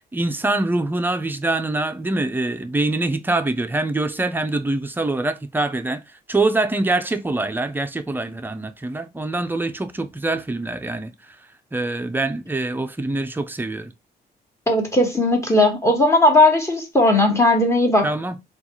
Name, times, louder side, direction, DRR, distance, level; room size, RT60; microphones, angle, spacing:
voice 1, 0.1-6.0 6.3-11.1 11.7-13.9 18.0-18.3, right 2 dB, 10° right, 0.4 m, -24 dB
voice 2, 14.7-18.0, left 2 dB, 15° left, 1.1 m, -17 dB
3.9 x 2.3 x 2.9 m
cardioid pair, 130°, 18 cm